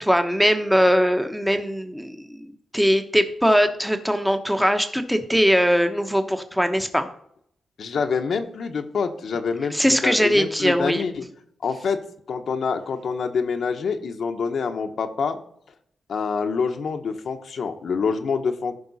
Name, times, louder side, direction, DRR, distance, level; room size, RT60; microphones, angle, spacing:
voice 1, 0.0-7.1 9.7-11.1, equal, ahead, 7 dB, 1.0 m, -21 dB
voice 2, 7.8-11.2 11.6-12.0 12.3-15.4 16.1-18.8, left 5 dB, 70° left, 5 dB, 1.0 m, -26 dB
14.5 x 5.4 x 4.1 m, 0.71 s
cardioid pair, 85°, 0 cm